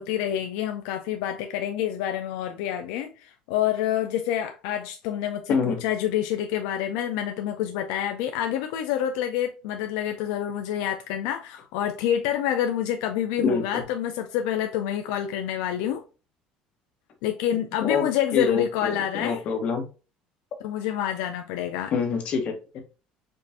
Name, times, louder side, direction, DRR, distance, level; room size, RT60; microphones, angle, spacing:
voice 1, 0.0-16.0 17.2-19.4 20.6-21.9, left 10 dB, 90° left, 0.4 m, -27 dB
voice 2, 5.5-5.8 13.4-13.8 17.9-18.1 18.3-19.8 21.9-22.8, left 5 dB, 50° left, 1.2 m, -26 dB
5.3 x 2.5 x 2.7 m
cardioid pair, 130°, 3 cm